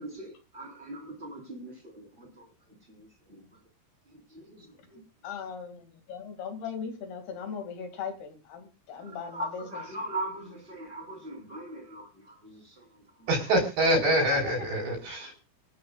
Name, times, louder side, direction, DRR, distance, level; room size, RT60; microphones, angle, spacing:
voice 1, 0.0-2.5 2.9-3.4 4.1-5.0 9.0-12.9 13.2-13.3 15.2-15.3, right 1 dB, 10° right, 2 dB, 3.5 m, -40 dB
voice 2, 5.2-9.8, left 6 dB, 65° left, 6 dB, 4.3 m, -39 dB
voice 3, 13.3-15.3, right 1 dB, 80° right, -2 dB, 6.8 m, -25 dB
25.5 x 8.8 x 2.5 m, 0.30 s
omnidirectional pair, 4.9 m